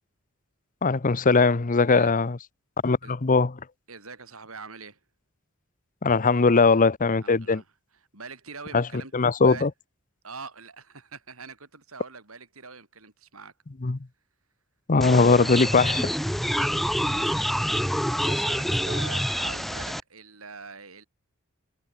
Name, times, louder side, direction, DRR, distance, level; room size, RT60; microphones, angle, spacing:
voice 1, 0.8-2.4 2.8-3.5 6.0-7.6 8.7-8.8 9.1-9.7 13.8-14.0 14.9-16.1, left 4 dB, 40° left, 0.8 m, -20 dB
voice 2, 3.9-5.0 7.2-7.7 7.9-9.7 10.2-13.5 16.5-21.0, right 4 dB, 90° right, 6.9 m, -43 dB
sound 1, 15.0-20.0, equal, ahead, 1.7 m, -27 dB
head